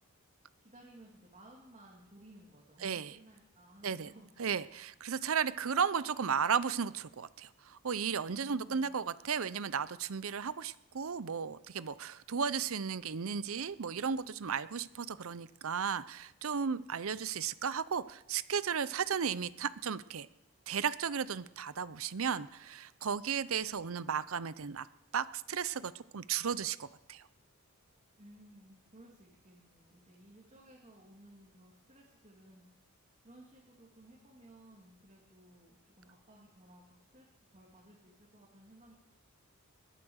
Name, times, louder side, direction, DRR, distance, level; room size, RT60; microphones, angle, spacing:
voice 1, 0.6-4.3 8.4-9.2 28.2-32.9 33.2-38.9, right 1 dB, 30° right, -4 dB, 2.6 m, -58 dB
voice 2, 2.8-3.1 3.8-4.1 4.4-20.3 20.7-24.9 25.1-27.2, right 6 dB, 65° right, 16 dB, 0.6 m, -34 dB
21.0 x 8.4 x 6.5 m, 0.87 s
head